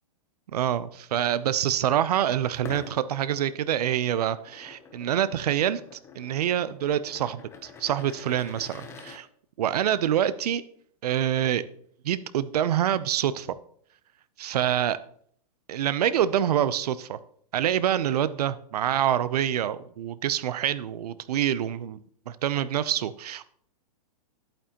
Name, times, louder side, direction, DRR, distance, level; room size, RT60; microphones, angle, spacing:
voice 1, 0.5-5.8 6.1-9.3 9.6-10.6 11.0-11.6 12.0-13.5 14.4-15.0 15.7-17.2 17.5-23.5, right 10 dB, 75° right, 15 dB, 0.7 m, -26 dB
sound 1, 2.5-9.2, left 5 dB, 15° left, 0.8 m, -46 dB
11.0 x 8.8 x 3.0 m, 0.62 s
hypercardioid pair, 160°, 20 cm